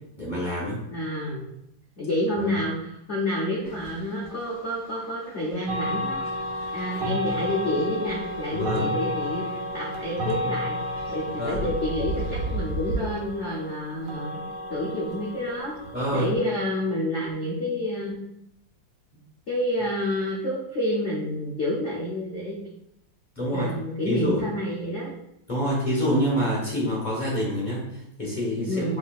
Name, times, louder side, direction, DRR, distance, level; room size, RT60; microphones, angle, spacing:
voice 1, 0.2-0.8 2.4-2.5 8.5-8.9 11.4-11.6 15.9-16.3 23.4-23.7 24.1-24.4 25.5-29.0, equal, 25° left, -7 dB, 1.2 m, -27 dB
voice 2, 0.9-1.5 2.0-6.2 6.7-9.4 9.7-10.8 11.1-14.4 14.7-15.8 16.1-18.2 19.5-22.6 23.5-25.1 28.7-29.0, left 1 dB, 75° left, -5 dB, 0.6 m, -28 dB
sound 1, 3.6-13.1, right 2 dB, 55° right, 2.4 m, -37 dB
sound 2, 5.7-16.3, left 1 dB, 80° right, 1.7 m, -32 dB
5.5 x 3.9 x 2.4 m, 0.78 s
omnidirectional pair, 2.4 m